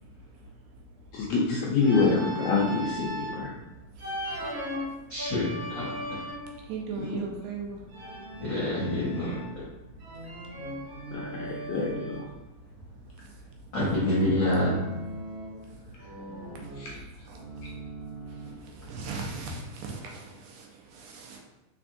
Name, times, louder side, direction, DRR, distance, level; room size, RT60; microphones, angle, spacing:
voice 1, 1.1-3.5 7.0-7.2 11.1-12.2 16.7-17.0, left 4 dB, 80° left, -3 dB, 1.7 m, -27 dB
Organ, 1.8-3.4 4.0-6.6 7.9-9.6 10.0-12.3 13.9-15.7 16.0-18.7, right 1 dB, 55° right, 2.2 m, -39 dB
voice 2, 5.1-5.9 8.4-9.3 13.7-14.7, left 1 dB, 50° left, -10 dB, 1.4 m, -26 dB
voice 3, 6.7-7.8 17.3-17.4 18.4-18.5 18.8-21.4, right 4 dB, 80° right, 0 dB, 2.0 m, -37 dB
4.5 x 4.1 x 2.6 m, 1.0 s
omnidirectional pair, 3.8 m